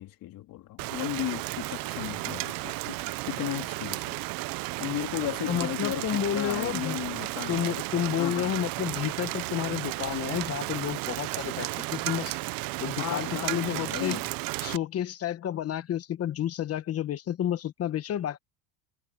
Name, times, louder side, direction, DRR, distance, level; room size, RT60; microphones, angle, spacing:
voice 1, 0.0-4.2 4.6-7.6 8.2-8.5 13.0-14.3, left 15 dB, 50° left, 3.5 m, -35 dB
Rain, 0.8-14.8, right 21 dB, 50° right, 0.7 m, -33 dB
voice 2, 5.5-7.0 7.5-12.4 12.8-14.2 14.6-18.4, left 10 dB, 35° left, 1.2 m, -30 dB
supercardioid pair, 130°, 44 cm